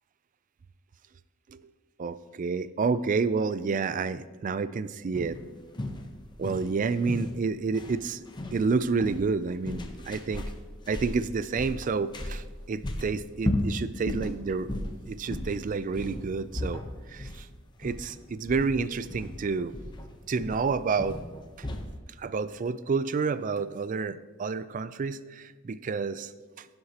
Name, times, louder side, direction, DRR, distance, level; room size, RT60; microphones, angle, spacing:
voice 1, 2.0-5.4 6.4-8.2 8.5-10.5 10.9-14.7 15.0-16.8 17.1-17.5 17.8-19.7 20.3-21.2 22.2-26.3 26.6-26.7, right 4 dB, 40° right, 14 dB, 0.4 m, -29 dB
sound 1, 5.1-22.0, left 1 dB, 25° left, 0.8 m, -36 dB
16.0 x 7.8 x 2.9 m, 1.3 s
head